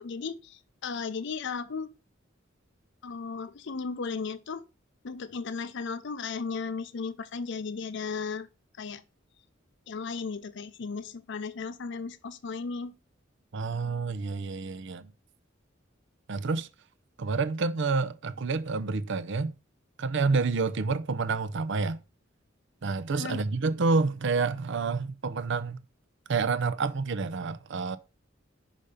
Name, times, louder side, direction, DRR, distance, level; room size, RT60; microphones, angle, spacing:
voice 1, 0.0-1.9 3.0-4.6 5.0-8.5 8.8-9.0 9.9-12.9 23.2-23.4, left 5 dB, 65° left, 0.5 m, -35 dB
voice 2, 13.5-15.1 16.3-16.7 17.2-19.5 20.0-22.0 22.8-25.8 26.3-28.0, right 4 dB, 65° right, 0.6 m, -28 dB
5.6 x 5.1 x 6.5 m
head